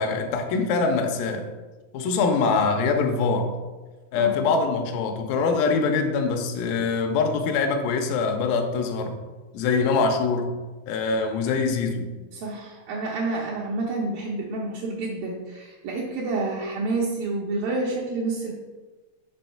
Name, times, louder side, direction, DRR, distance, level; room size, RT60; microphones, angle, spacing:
voice 1, 0.0-1.5 1.9-3.5 4.1-9.1 9.5-10.5 10.9-12.1, left 4 dB, 80° left, 3 dB, 2.2 m, -23 dB
voice 2, 4.1-4.6 12.3-18.5, right 3 dB, 75° right, -4 dB, 2.3 m, -29 dB
6.2 x 3.6 x 5.7 m, 1.2 s
omnidirectional pair, 4.6 m